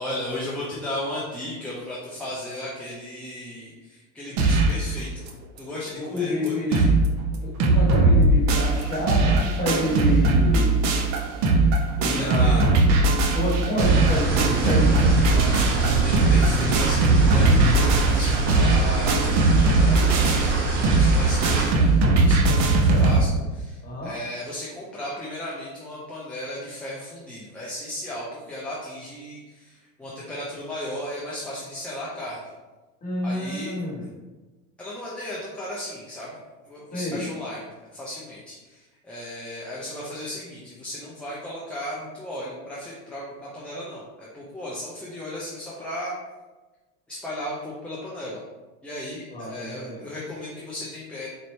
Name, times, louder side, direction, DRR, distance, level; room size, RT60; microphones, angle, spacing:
voice 1, 0.0-5.2 5.6-6.9 12.1-12.7 15.3-20.5 20.9-32.5 33.2-33.7 34.8-46.2 47.1-48.4 48.8-51.3, left 1 dB, 5° left, -7 dB, 0.5 m, -35 dB
sound 1, 4.4-4.8 5.3-5.4 5.6-5.7 6.2-6.3 6.5-7.1 7.3-23.2, right 2 dB, 40° right, 0.6 m, -20 dB
voice 2, 5.9-6.7 7.6-10.8 12.0-12.7 13.3-14.9 22.9-23.1 23.8-24.1 33.0-34.0 36.9-37.2 49.3-50.0, left 1 dB, 20° left, -5 dB, 1.4 m, -28 dB
sound 2, 13.8-21.7, right 3 dB, 65° right, 1.2 m, -24 dB
4.4 x 2.6 x 3.1 m, 1.2 s
supercardioid pair, 120°, 43 cm